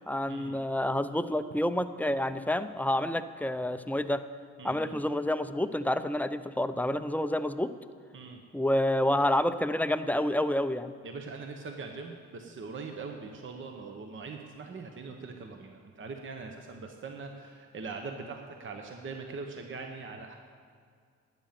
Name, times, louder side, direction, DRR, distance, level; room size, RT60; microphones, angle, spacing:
voice 1, 0.1-4.2 4.6-7.7 8.5-10.9, left 1 dB, 5° left, 11 dB, 0.5 m, -28 dB
voice 2, 4.6-5.0 8.1-8.4 11.0-20.4, right 4 dB, 40° right, 4 dB, 1.1 m, -42 dB
12.5 x 9.1 x 5.9 m, 2.1 s
cardioid pair, 90°, 30 cm